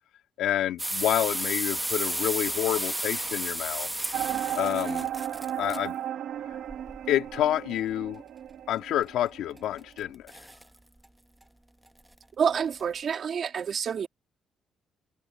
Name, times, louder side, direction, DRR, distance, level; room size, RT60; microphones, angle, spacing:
voice 1, 0.4-3.9 4.3-5.1 5.6-5.9 7.1-8.2 8.7-10.3, left 12 dB, 85° left, 1.8 m, -28 dB
sound 1, 0.8-5.8 6.7-7.4 9.0-9.1 9.6-10.0 10.3-10.6 11.0-11.1 11.4-11.5 12.0-12.1 12.6-12.8, right 1 dB, 10° right, 1.0 m, -32 dB
sound 2, 4.1-9.7, right 10 dB, 70° right, 0.9 m, -34 dB
voice 2, 12.4-14.1, right 7 dB, 55° right, 2.5 m, -28 dB
cardioid pair, 90°, 0 cm